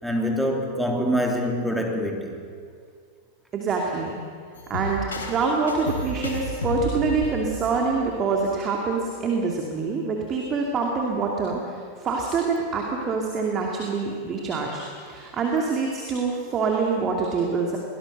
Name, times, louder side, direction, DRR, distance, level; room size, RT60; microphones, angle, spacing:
voice 1, 0.0-2.4, equal, ahead, 1 dB, 3.1 m, -25 dB
voice 2, 3.5-4.2 4.7-17.8, right 4 dB, 25° right, 0 dB, 2.7 m, -25 dB
sound 1, 4.5-8.5, equal, 70° left, 3.4 m, -32 dB
22.5 x 19.0 x 6.7 m, 2.1 s
figure-of-eight pair, 90°, 0 cm